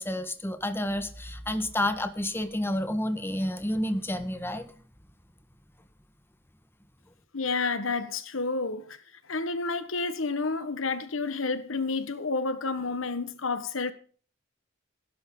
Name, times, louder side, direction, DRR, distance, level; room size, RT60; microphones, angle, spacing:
voice 1, 0.0-4.6, left 1 dB, 10° left, 1.5 m, -30 dB
voice 2, 7.3-9.0 9.3-13.9, left 3 dB, 85° left, 1.4 m, -30 dB
16.0 x 12.0 x 3.9 m
head